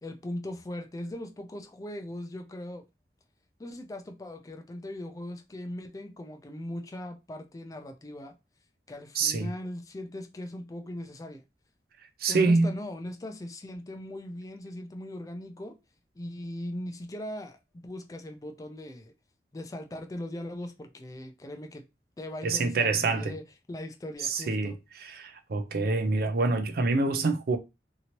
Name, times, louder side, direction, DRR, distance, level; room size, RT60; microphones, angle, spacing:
voice 1, 0.0-2.8 3.6-8.3 8.9-11.4 12.3-15.8 16.2-19.1 19.5-21.8 22.2-23.4 23.7-24.8, left 1 dB, 20° left, 0.4 m, -39 dB
voice 2, 9.1-9.5 12.2-12.7 22.4-23.3 24.2-24.7 25.0-27.6, right 3 dB, 55° right, 0.5 m, -26 dB
2.9 x 2.7 x 2.9 m
head